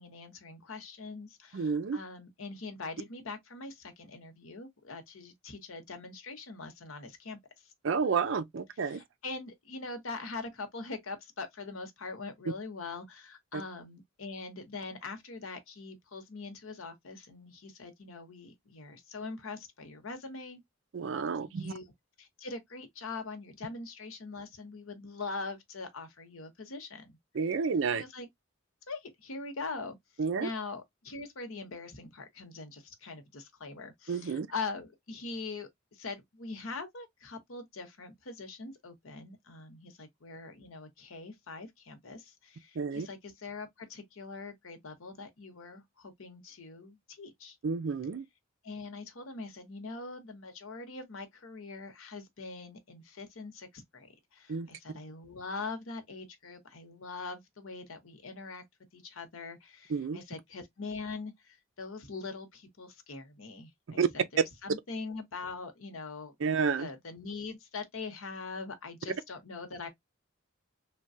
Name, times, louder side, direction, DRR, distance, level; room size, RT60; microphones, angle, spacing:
voice 1, 0.0-7.7 8.8-20.6 21.4-21.8 22.2-27.1 27.9-28.3 28.9-30.0 30.4-47.6 48.6-58.6 58.9-66.3 66.8-69.9, left 3 dB, 90° left, 0.9 m, -42 dB
voice 2, 1.5-2.0 7.8-9.0 13.5-13.6 20.9-21.7 27.3-28.0 30.2-30.5 34.1-34.5 42.8-43.1 47.6-48.3 54.5-54.7 59.9-60.2 64.0-64.1 66.4-66.9, right 5 dB, 65° right, 0.4 m, -30 dB
3.2 x 2.2 x 2.6 m
head